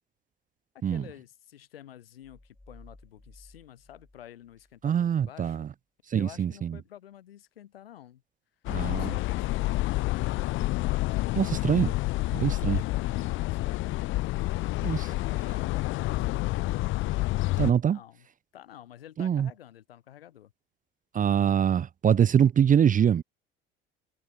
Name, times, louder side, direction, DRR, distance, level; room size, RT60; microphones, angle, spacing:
voice 1, 0.7-5.7 6.1-8.2 8.9-10.1 12.7-13.9 15.0-16.5 17.9-18.3 18.5-20.5, left 11 dB, 75° left, 5.5 m, -50 dB
sound 1, 2.2-4.8, left 1 dB, 10° left, 5.8 m, -55 dB
voice 2, 4.8-5.7 6.1-6.8 8.7-9.1 11.4-11.9 12.3-12.8 14.8-15.1 17.6-18.0 19.2-19.5 21.1-23.2, right 8 dB, 25° right, 0.8 m, -24 dB
sound 2, 8.7-17.7, left 19 dB, 45° left, 0.6 m, -28 dB
figure-of-eight pair, 60°, 29 cm